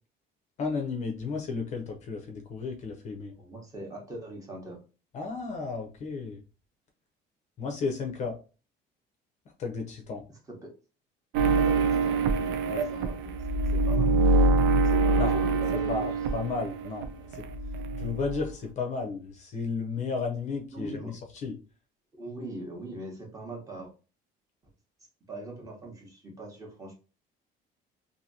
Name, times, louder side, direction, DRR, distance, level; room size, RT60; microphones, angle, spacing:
voice 1, 0.6-3.3 5.1-6.4 7.6-8.4 9.6-10.2 12.7-12.8 15.2-15.4 15.9-17.5 18.0-21.1 21.4-21.5, left 4 dB, 40° left, 3 dB, 0.6 m, -33 dB
voice 2, 3.4-4.8 10.5-10.8 11.4-14.1 14.8-16.1 20.7-21.1 22.2-23.9 25.3-26.9, right 1 dB, 20° right, -1 dB, 0.8 m, -41 dB
sound 1, 11.3-17.1 17.3-18.5, right 3 dB, 90° right, 0.4 m, -25 dB
2.8 x 2.6 x 2.6 m, 0.34 s
cardioid pair, 175°, 18 cm